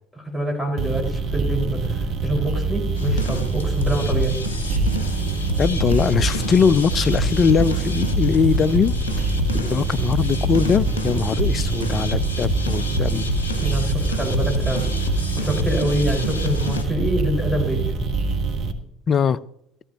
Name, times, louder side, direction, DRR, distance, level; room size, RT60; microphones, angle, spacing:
voice 1, 0.1-4.3 13.6-14.9 15.4-17.9, right 1 dB, 10° left, 4.9 m, -25 dB
sound 1, 0.8-18.7, right 4 dB, 55° right, 1.4 m, -25 dB
sound 2, 3.0-16.8, left 1 dB, 80° left, 1.4 m, -27 dB
voice 2, 5.6-8.9 9.5-13.2 19.1-19.4, left 6 dB, 40° left, 0.5 m, -21 dB
13.5 x 13.5 x 2.9 m
figure-of-eight pair, 60°, 0 cm